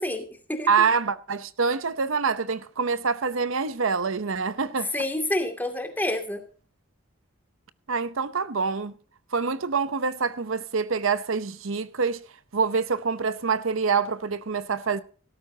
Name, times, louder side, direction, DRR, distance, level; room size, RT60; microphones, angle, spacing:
voice 1, 0.0-0.7 4.9-6.4, left 1 dB, 10° left, 2.4 m, -28 dB
voice 2, 0.7-4.9 7.9-8.9 9.3-12.2 12.5-15.0, right 5 dB, 70° right, 0.8 m, -26 dB
17.0 x 13.5 x 2.8 m
head